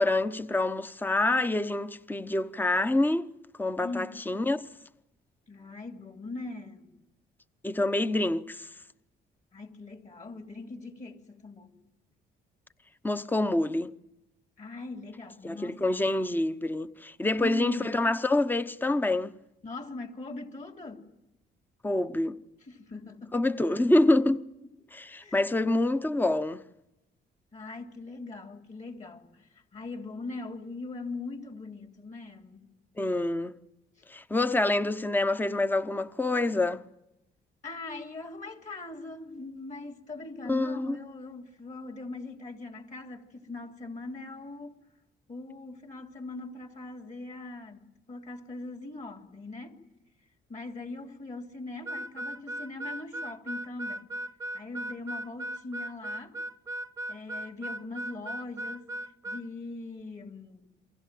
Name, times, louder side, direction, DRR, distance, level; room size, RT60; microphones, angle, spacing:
voice 1, 0.0-3.3 3.6-4.6 7.6-8.7 13.0-13.9 15.4-19.3 21.8-22.4 23.3-24.4 24.9-26.6 33.0-33.5 34.1-36.8 40.5-41.0, left 2 dB, 10° left, 0.9 m, -26 dB
voice 2, 3.8-4.2 5.5-6.9 9.5-11.8 14.6-16.1 17.4-17.9 19.6-21.1 22.6-23.8 24.6-24.7 25.2-25.5 27.5-32.7 37.6-44.8 45.3-49.8 50.5-54.1 54.5-56.4 57.1-60.7, left 3 dB, 40° left, 3.0 m, -41 dB
Harmonica, 51.9-59.5, right 1 dB, 15° right, 0.9 m, -37 dB
28.5 x 23.0 x 7.6 m
cardioid pair, 90°, 20 cm